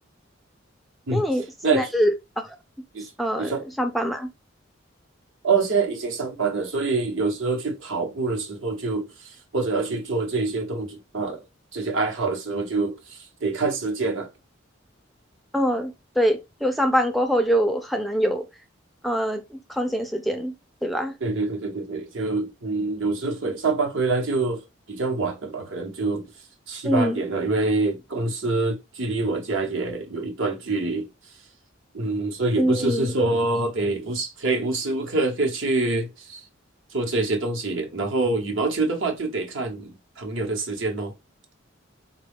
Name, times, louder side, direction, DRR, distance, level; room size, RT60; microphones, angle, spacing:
voice 1, 1.1-2.1 2.4-2.6 3.0-3.5 3.8-4.3 15.5-18.5 19.0-20.5 20.8-21.1 26.8-27.3 32.6-33.1, equal, ahead, 0.3 m, -24 dB
voice 2, 5.4-11.4 11.7-14.3 21.2-24.6 24.9-26.3 26.7-31.1 31.9-36.4 36.9-41.1, right 3 dB, 75° right, 0.9 m, -26 dB
3.8 x 2.2 x 3.4 m
head